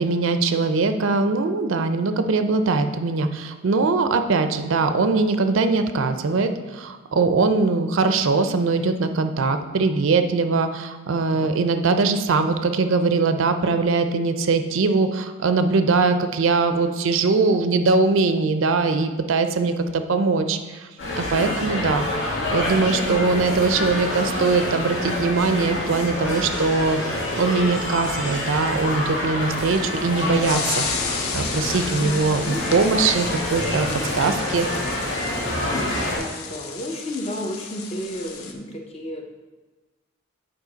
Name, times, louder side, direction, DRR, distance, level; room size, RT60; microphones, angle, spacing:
voice 1, 0.0-20.9 21.1-22.1 22.5-27.0 27.3-33.9 34.1-34.7, right 4 dB, 65° right, 8 dB, 0.4 m, -21 dB
sound 1, 21.0-36.2, left 1 dB, 60° left, 1.8 m, -27 dB
voice 2, 21.3-21.9 23.1-23.5 32.0-32.6 35.6-39.2, left 1 dB, 30° left, 3 dB, 0.6 m, -32 dB
sound 2, 29.5-38.5, left 6 dB, 85° left, 0.7 m, -33 dB
7.3 x 4.9 x 3.9 m, 1.2 s
head